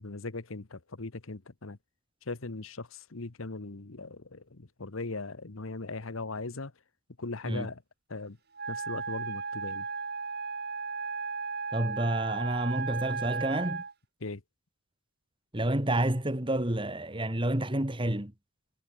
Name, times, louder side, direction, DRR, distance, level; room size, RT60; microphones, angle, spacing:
voice 1, 0.0-1.8 2.3-6.7 7.2-7.8 8.1-8.4 8.7-9.9 14.2-14.4, left 3 dB, 70° left, 1.2 m, -39 dB
Wind instrument woodwind instrument, 8.5-13.9, right 5 dB, 50° right, 2.5 m, -35 dB
voice 2, 11.7-13.8 15.5-18.3, right 1 dB, 25° right, 1.9 m, -29 dB
head